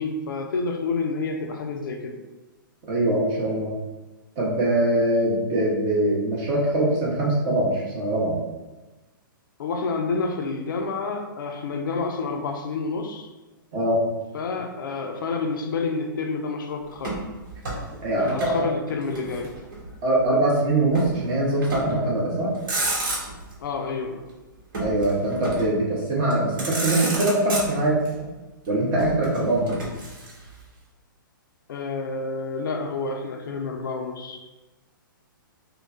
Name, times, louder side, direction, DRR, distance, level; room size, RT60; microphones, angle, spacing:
voice 1, 0.0-2.2 9.6-13.3 14.3-17.2 18.2-19.5 23.6-24.2 31.7-34.4, left 4 dB, 70° left, 4 dB, 0.5 m, -29 dB
voice 2, 2.9-3.7 4.4-8.4 13.7-14.0 18.0-18.4 20.0-22.5 24.8-28.0 28.7-29.7, right 1 dB, 35° right, -5 dB, 1.4 m, -22 dB
Motor vehicle (road), 17.0-18.6 18.9-20.0 20.9-21.2 21.6-22.1 22.5-23.5 24.7-25.8 26.3-26.4 26.6-28.1 29.0-30.6, right 2 dB, 65° right, 1.3 m, -31 dB
5.0 x 2.3 x 2.7 m, 1.1 s
hypercardioid pair, 130°, 12 cm